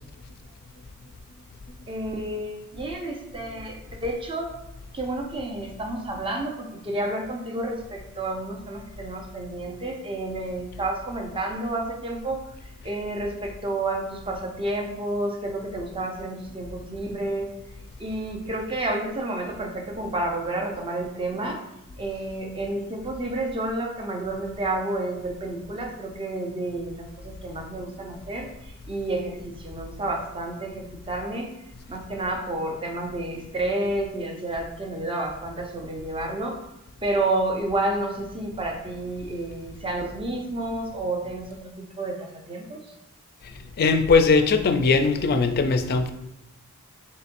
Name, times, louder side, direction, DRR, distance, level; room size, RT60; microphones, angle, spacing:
voice 1, 1.9-4.5 4.9-12.4 12.8-17.5 18.0-21.6 22.0-31.5 31.9-36.6 37.0-42.8, right 2 dB, 25° right, 2 dB, 0.6 m, -30 dB
voice 2, 43.4-46.1, left 4 dB, 45° left, 8 dB, 0.4 m, -20 dB
4.1 x 3.8 x 2.5 m, 0.91 s
head